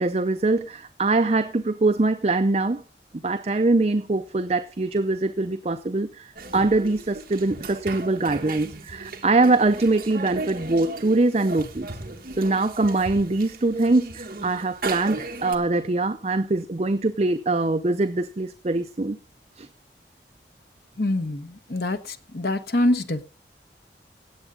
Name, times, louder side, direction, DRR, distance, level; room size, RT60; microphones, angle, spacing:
voice 1, 0.0-2.8 3.1-11.9 12.4-19.2 19.6-19.7, right 2 dB, 35° right, 0.5 m, -23 dB
Himalaya Lodge Nepal atmosphere interior, 6.4-15.6, right 2 dB, 55° right, 1.5 m, -36 dB
voice 2, 21.0-23.2, left 1 dB, 65° left, 1.2 m, -25 dB
17.5 x 8.1 x 3.8 m
head